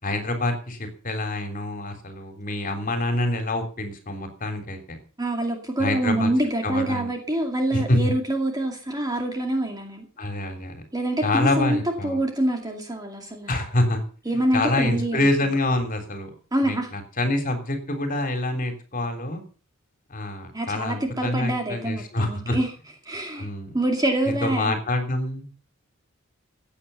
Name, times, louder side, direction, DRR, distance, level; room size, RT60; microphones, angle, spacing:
voice 1, 0.0-5.0 5.8-6.3 6.6-7.1 7.7-8.1 10.2-10.8 11.2-12.2 13.5-14.0 14.5-16.3 16.6-19.4 20.1-22.6 23.3-23.7 24.4-25.5, left 2 dB, 40° left, 6 dB, 3.4 m, -26 dB
voice 2, 5.2-10.1 10.9-13.5 14.3-15.3 16.5-16.9 20.5-22.7 23.0-23.5 23.7-24.7, right 1 dB, 20° right, 2 dB, 2.3 m, -26 dB
16.0 x 9.0 x 6.9 m, 0.40 s
head